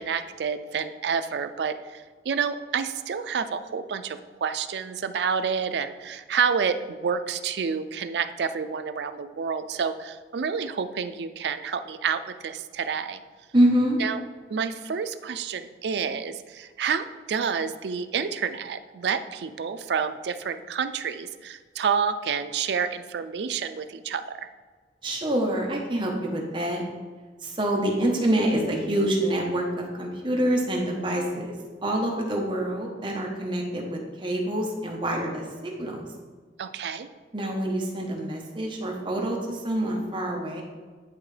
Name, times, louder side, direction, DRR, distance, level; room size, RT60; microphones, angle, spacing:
voice 1, 0.0-13.2 14.0-14.2 14.5-24.5 36.6-37.1, right 6 dB, 70° right, 10 dB, 0.4 m, -29 dB
voice 2, 13.5-14.0 25.0-26.8 27.4-31.6 31.8-36.1 37.3-40.6, right 1 dB, 30° right, -1 dB, 1.0 m, -26 dB
10.5 x 3.8 x 3.3 m, 1.4 s
head